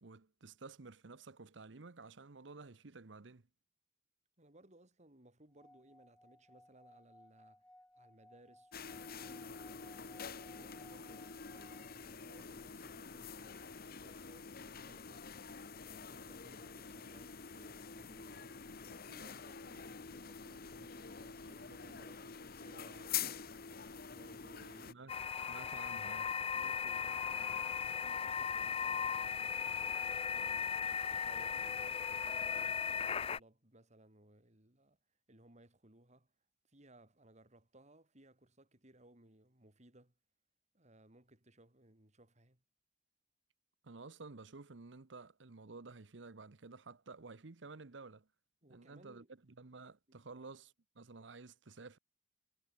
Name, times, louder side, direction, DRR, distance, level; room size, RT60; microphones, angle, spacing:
voice 1, 0.0-3.4 24.9-25.1 25.5-26.4 43.8-48.3 48.7-52.0, right 3 dB, 70° right, 0.9 m, -52 dB
voice 2, 4.4-7.7 8.0-13.6 14.0-15.3 15.8-23.4 24.1-25.0 26.5-30.8 31.1-35.0 35.3-36.3 36.7-40.1 40.7-42.6 48.6-49.3 50.1-50.5, right 1 dB, 40° right, 3.8 m, -63 dB
Singing / Glass, 5.5-12.1, left 1 dB, 5° left, 1.1 m, -63 dB
sound 1, 8.7-24.9, left 7 dB, 55° left, 1.3 m, -47 dB
sound 2, 25.1-33.4, left 7 dB, 30° left, 0.5 m, -37 dB
head